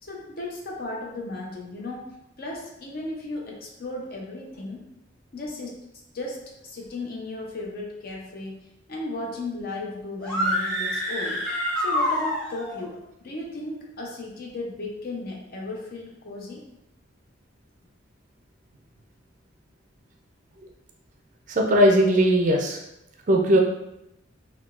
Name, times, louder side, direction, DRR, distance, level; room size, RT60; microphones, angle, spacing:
voice 1, 0.0-4.9 5.3-5.7 6.1-11.4 11.8-16.6, left 2 dB, 50° left, -1 dB, 0.6 m, -35 dB
sound 1, 10.2-12.8, equal, 5° left, 0.7 m, -26 dB
voice 2, 21.5-22.8 23.3-23.6, equal, 40° right, 1 dB, 0.4 m, -18 dB
3.5 x 2.3 x 2.4 m, 0.85 s
head